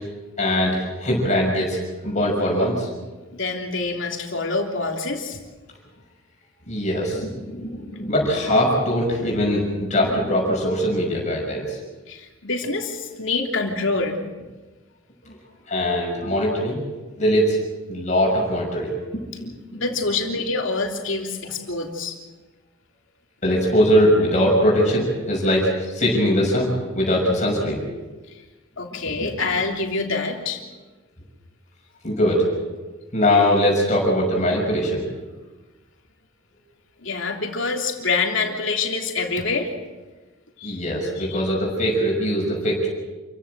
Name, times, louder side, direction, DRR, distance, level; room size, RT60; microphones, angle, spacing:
voice 1, 0.4-2.9 6.7-11.8 15.3-15.4 15.7-16.8 17.2-17.6 17.9-19.9 23.4-27.8 29.2-29.3 32.0-32.5 33.1-35.0 40.6-42.9, equal, 35° left, -2 dB, 6.3 m, -21 dB
voice 2, 3.3-5.4 12.1-14.2 19.8-22.1 28.8-30.6 37.0-39.7 40.6-40.8 41.2-41.4, left 3 dB, 60° left, 2 dB, 3.2 m, -26 dB
28.0 x 16.0 x 7.7 m, 1.2 s
head